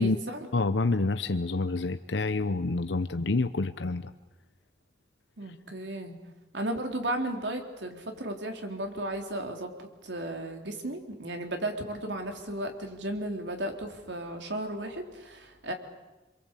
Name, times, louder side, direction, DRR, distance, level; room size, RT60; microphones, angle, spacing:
voice 1, 0.0-0.5 5.4-6.2 6.5-15.7, right 1 dB, 80° right, 4 dB, 3.7 m, -35 dB
voice 2, 0.5-4.1, left 3 dB, 90° left, 10 dB, 0.8 m, -27 dB
28.0 x 23.0 x 8.4 m, 1.1 s
head